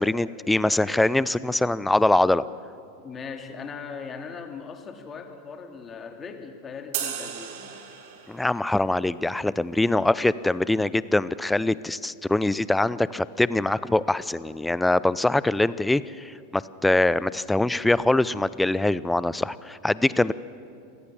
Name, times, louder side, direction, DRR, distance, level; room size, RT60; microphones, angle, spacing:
voice 1, 0.0-2.4 8.3-20.3, left 2 dB, 5° left, 18 dB, 0.6 m, -23 dB
voice 2, 3.0-7.7, left 5 dB, 25° left, 5 dB, 2.6 m, -39 dB
sound 1, 6.9-8.6, right 9 dB, 60° right, 2.4 m, -34 dB
27.0 x 16.5 x 7.0 m, 2.4 s
hypercardioid pair, 90°, 0 cm